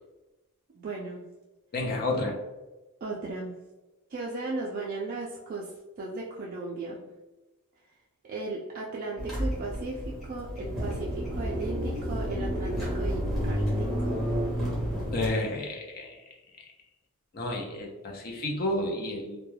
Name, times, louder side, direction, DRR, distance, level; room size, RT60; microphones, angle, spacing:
voice 1, 0.7-1.3 3.0-3.6 4.1-7.0 8.2-14.3, right 3 dB, 40° right, -3 dB, 0.3 m, -36 dB
voice 2, 1.7-2.4 15.1-16.2 17.3-19.4, left 2 dB, 45° left, 0 dB, 0.5 m, -31 dB
sound 1, 9.2-15.3, equal, ahead, 0.8 m, -30 dB
2.2 x 2.1 x 3.1 m, 1.1 s
head